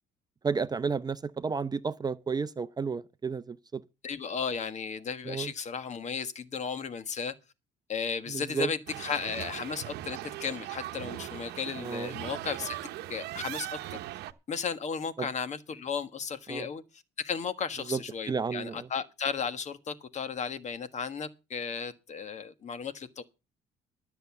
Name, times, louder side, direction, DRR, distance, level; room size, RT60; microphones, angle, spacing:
voice 1, 0.4-3.8 5.3-5.5 8.3-8.7 11.8-12.1 15.2-15.3 16.5-16.7 17.9-18.0 18.3-18.9, right 5 dB, 25° right, 0.6 m, -32 dB
voice 2, 4.0-7.3 7.9-12.8 13.1-13.8 14.5-16.8 17.2-23.2, left 6 dB, 45° left, 1.5 m, -35 dB
sound 1, 8.9-14.3, right 15 dB, 80° right, 0.9 m, -39 dB
13.0 x 6.8 x 7.1 m
cardioid pair, 110°, 17 cm